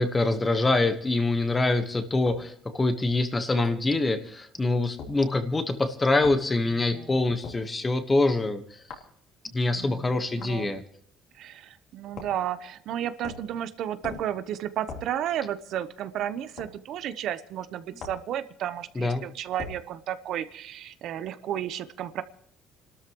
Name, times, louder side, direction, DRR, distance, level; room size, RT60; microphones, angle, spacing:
voice 1, 0.0-8.8 9.5-10.8 18.9-19.2, left 2 dB, 15° left, 10 dB, 1.3 m, -25 dB
sound 1, 2.3-2.5 3.6-3.9 5.0-5.2 6.2-6.4 7.4-7.7 8.9-9.1 10.4-10.6 12.1-12.5 13.2-13.5 14.0-14.4 14.9-15.1 16.6-16.7 18.0-18.3 19.6-19.8, left 4 dB, 60° left, 3.4 m, -40 dB
voice 2, 9.7-10.8 11.3-22.2, right 10 dB, 60° right, 12 dB, 0.8 m, -33 dB
30.0 x 13.0 x 3.1 m, 0.62 s
cardioid pair, 140°, 0 cm